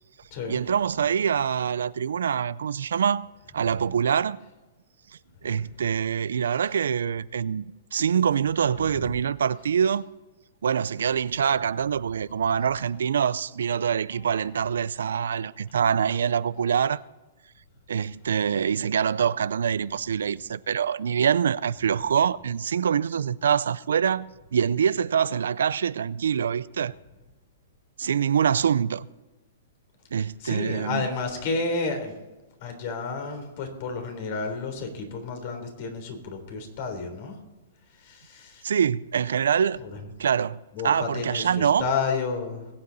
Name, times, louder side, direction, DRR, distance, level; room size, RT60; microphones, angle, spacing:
voice 1, 0.5-3.3 3.5-4.4 5.4-10.1 10.6-17.0 17.9-24.3 24.5-26.9 28.0-29.1 30.1-31.0 38.6-39.8 40.2-40.6 40.8-41.8, right 7 dB, 85° right, 0.5 m, -25 dB
voice 2, 8.8-9.2 12.6-12.7 14.1-14.2 16.6-16.7 30.4-32.2 32.6-37.4 38.0-38.7 39.8-40.0 40.7-42.7, left 4 dB, 50° left, 3.5 m, -31 dB
21.5 x 8.4 x 4.0 m
hypercardioid pair, 145°, 0 cm